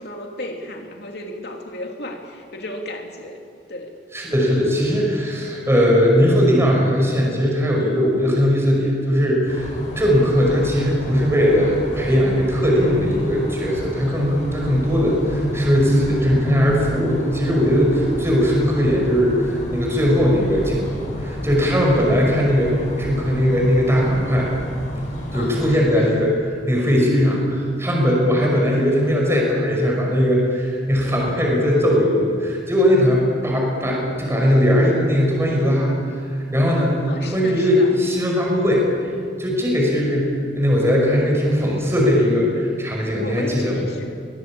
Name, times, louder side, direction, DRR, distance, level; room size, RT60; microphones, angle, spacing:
voice 1, 0.0-3.4 3.7-4.0 25.3-26.1 37.0-37.9 42.9-44.1, left 1 dB, 65° left, 2 dB, 2.8 m, -34 dB
voice 2, 4.1-24.5 25.3-26.3 26.7-36.2 36.5-39.1 39.4-40.3 40.6-43.8, equal, 15° right, -2 dB, 5.6 m, -19 dB
sound 1, 9.5-25.7, equal, 45° left, 7.0 m, -29 dB
23.0 x 19.0 x 8.6 m, 2.2 s
head